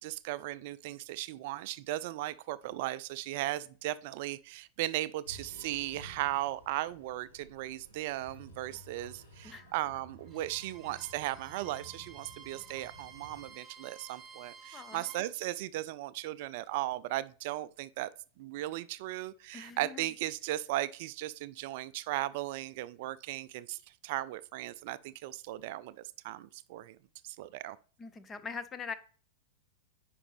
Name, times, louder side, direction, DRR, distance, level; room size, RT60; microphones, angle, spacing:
voice 1, 0.0-18.1 18.4-27.0 27.2-27.8, right 15 dB, 50° right, 0.3 m, -37 dB
sound 1, 5.2-13.5, equal, 75° left, 2.9 m, -54 dB
Bowed string instrument, 10.2-15.2, right 6 dB, 20° right, 1.6 m, -53 dB
voice 2, 14.7-15.0 19.5-20.0 28.0-28.9, left 5 dB, 20° left, 0.7 m, -42 dB
9.7 x 5.1 x 3.2 m
figure-of-eight pair, 90°, 0 cm